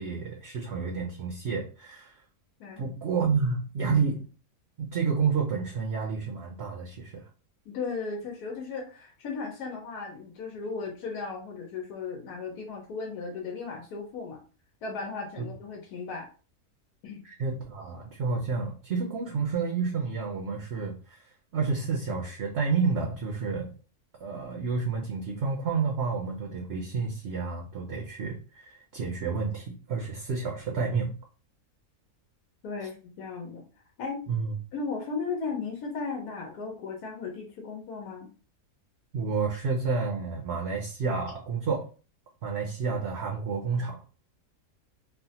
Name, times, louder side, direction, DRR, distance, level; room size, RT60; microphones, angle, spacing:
voice 1, 0.0-2.1 2.8-4.3 4.8-7.3 15.4-15.5 17.2-23.7 24.2-31.1 32.8-32.9 34.3-34.6 39.1-41.9 42.4-44.0, right 5 dB, 60° right, 0 dB, 0.7 m, -30 dB
voice 2, 7.7-14.4 14.8-16.3 17.0-17.2 32.6-33.6 34.0-34.2 34.7-38.3, left 4 dB, 85° left, 0 dB, 1.3 m, -36 dB
3.4 x 2.1 x 2.7 m, 0.36 s
omnidirectional pair, 1.6 m